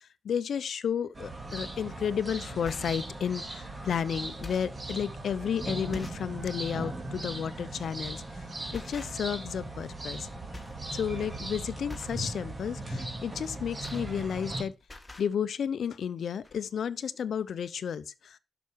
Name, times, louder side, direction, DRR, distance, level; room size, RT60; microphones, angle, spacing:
voice 1, 0.2-8.2 8.7-10.3 10.9-14.7 15.2-18.4, left 8 dB, 75° left, 0.7 m, -32 dB
sound 1, 1.1-14.6, right 2 dB, 30° right, 2.8 m, -38 dB
sound 2, 1.7-1.9 2.5-3.2 3.8-3.9 4.3-4.8 5.4-5.5 5.9-6.3 6.7-6.9 8.1-8.3 8.7-9.5 9.8-10.2 10.5-10.8 11.2-11.4 11.9-12.3 13.4-14.5 14.8-15.3 16.1-16.2 16.4-16.6, left 3 dB, 25° left, 1.8 m, -46 dB
11.5 x 6.1 x 4.6 m
cardioid pair, 80°, 0 cm